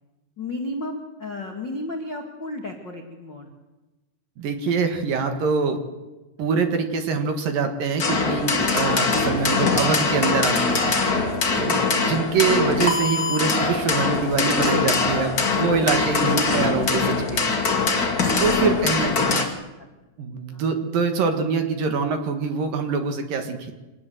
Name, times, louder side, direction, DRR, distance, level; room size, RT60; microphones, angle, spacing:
voice 1, 0.4-3.5 4.7-4.8 11.8-12.2 17.7-19.3 19.8-19.9 20.5-20.6, left 2 dB, 90° left, 2 dB, 1.0 m, -34 dB
voice 2, 4.4-5.8 6.4-10.9 11.6-17.4 18.4-19.4 20.2-23.7, right 5 dB, 60° right, 6 dB, 2.7 m, -24 dB
sound 1, 8.0-19.4, left 4 dB, 45° left, 1.1 m, -22 dB
25.5 x 19.0 x 7.9 m, 1.1 s
omnidirectional pair, 5.6 m